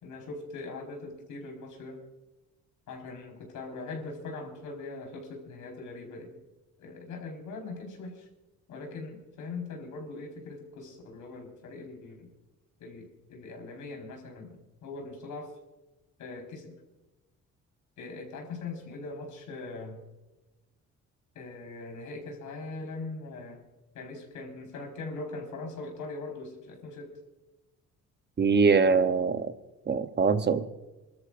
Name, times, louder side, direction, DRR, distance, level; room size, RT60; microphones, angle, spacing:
voice 1, 0.0-2.0 2.9-6.4 6.8-8.3 8.7-12.3 12.8-15.5 16.2-16.8 18.0-20.0 21.3-23.6 23.9-27.1, left 3 dB, 80° left, 2 dB, 4.5 m, -41 dB
voice 2, 28.4-29.5 29.9-30.6, right 5 dB, 35° right, 10 dB, 0.9 m, -23 dB
27.5 x 13.0 x 2.5 m, 1.1 s
cardioid pair, 90°, 30 cm